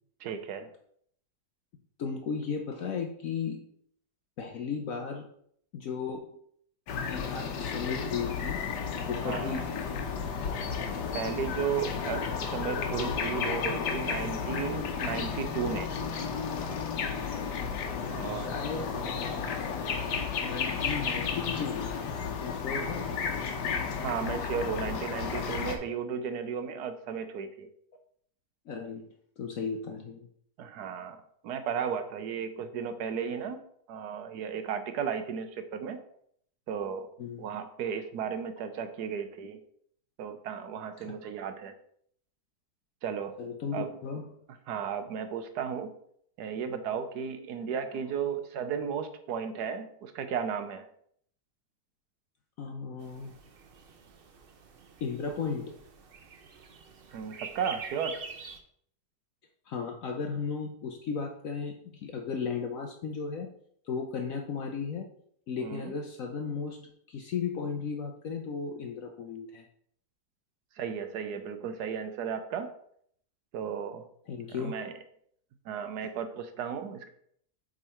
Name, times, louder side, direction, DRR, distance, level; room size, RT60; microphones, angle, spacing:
voice 1, 0.2-0.7 9.2-9.6 11.1-15.9 18.1-18.5 22.8-23.0 23.9-27.7 30.6-33.6 33.9-36.0 36.7-37.1 37.4-39.6 40.2-41.7 43.0-43.3 43.7-43.9 44.7-45.9 46.4-50.9 57.1-58.2 65.6-65.9 70.8-72.7 73.5-74.1 74.5-74.9 75.7-77.1, right 7 dB, 75° right, 9 dB, 1.2 m, -34 dB
voice 2, 2.0-3.7 4.4-5.3 5.7-6.4 7.1-8.7 9.1-10.0 17.9-18.9 20.4-22.0 22.4-23.2 28.7-29.1 29.4-30.3 37.2-37.5 43.4-44.4 52.6-53.3 55.0-55.8 59.7-63.5 63.8-65.1 65.5-69.6 74.3-75.0, left 5 dB, 65° left, 3 dB, 1.0 m, -35 dB
sound 1, 6.9-25.8, left 6 dB, 85° left, 1.5 m, -33 dB
sound 2, 53.0-58.6, right 5 dB, 50° right, 0.7 m, -46 dB
7.8 x 3.7 x 4.3 m, 0.66 s
omnidirectional pair, 1.8 m